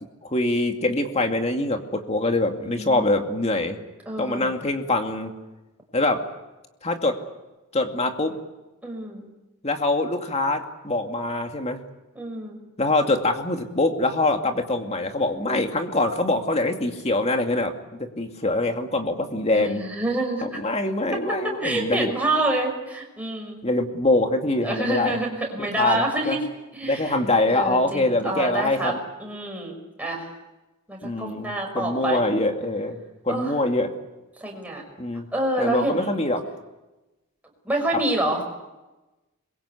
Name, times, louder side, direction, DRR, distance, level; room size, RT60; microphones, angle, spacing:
voice 1, 0.2-3.8 4.2-5.3 5.9-6.2 6.8-7.2 7.7-8.4 9.6-11.8 12.8-17.7 18.0-19.8 20.4-22.1 23.6-25.2 25.6-26.4 26.8-29.0 31.0-33.0 33.2-33.9 35.0-35.2 35.6-36.5 37.9-38.0, left 2 dB, 30° left, 4 dB, 2.4 m, -24 dB
voice 2, 2.6-3.2 4.1-4.5 8.8-9.2 12.1-12.6 19.5-20.6 21.6-23.6 24.6-26.4 26.7-27.2 27.5-28.9 29.2-30.3 30.9-32.2 33.3-33.5 34.4-34.8 35.3-36.2 37.6-38.4, right 2 dB, 5° right, 0 dB, 6.0 m, -27 dB
26.0 x 22.5 x 8.4 m, 1.1 s
head